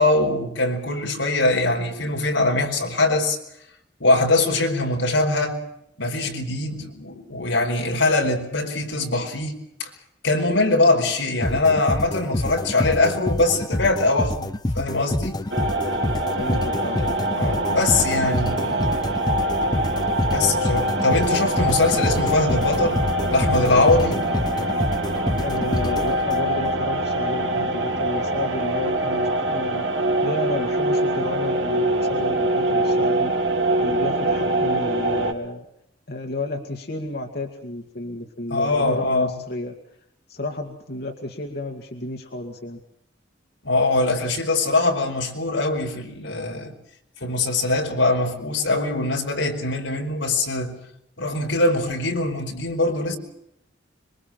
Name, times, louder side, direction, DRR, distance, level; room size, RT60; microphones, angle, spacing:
voice 1, 0.0-3.4 4.0-5.6 6.0-9.5 9.8-9.9 10.2-14.5 14.7-15.4 17.4-19.1 20.3-23.0 23.3-24.2 38.5-39.3 43.6-46.7 47.2-50.8 51.2-53.2, left 2 dB, 90° left, 2 dB, 4.9 m, -22 dB
sound 1, 11.4-26.7, left 1 dB, 20° left, 0.8 m, -27 dB
sound 2, 15.5-35.3, right 1 dB, 70° right, 3.6 m, -24 dB
voice 2, 16.4-17.1 25.4-33.3 33.8-35.6 36.1-39.7 40.3-42.8, left 1 dB, 55° left, 2 dB, 2.3 m, -32 dB
26.0 x 23.5 x 5.9 m, 0.78 s
head